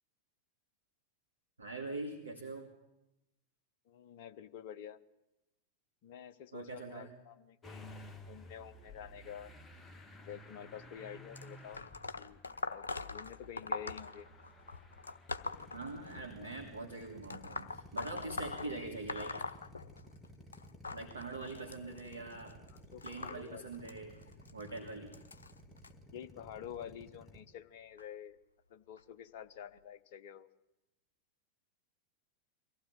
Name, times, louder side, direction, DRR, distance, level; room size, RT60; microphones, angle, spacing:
voice 1, 1.6-2.7 6.5-7.1 15.7-19.4 20.9-22.6 23.0-24.2 24.5-25.1, right 3 dB, 75° right, 0 dB, 2.6 m, -43 dB
voice 2, 3.9-5.0 6.0-9.5 10.3-11.8 12.2-12.4 12.7-14.3 22.1-22.3 22.7-23.9 26.1-28.4 28.7-30.5, left 9 dB, 50° left, 9 dB, 1.0 m, -49 dB
Motor vehicle (road) / Engine starting, 7.6-19.3, left 1 dB, 15° left, 1.5 m, -55 dB
sound 1, 11.3-16.5 17.2-20.3 20.5-25.9 26.7-26.9 28.0-28.1 29.0-29.1 29.8-29.9, left 3 dB, 75° left, 0.8 m, -43 dB
Drill, 15.4-27.4, equal, ahead, 2.8 m, -55 dB
23.0 x 15.5 x 9.3 m, 0.95 s
figure-of-eight pair, 90°, 0 cm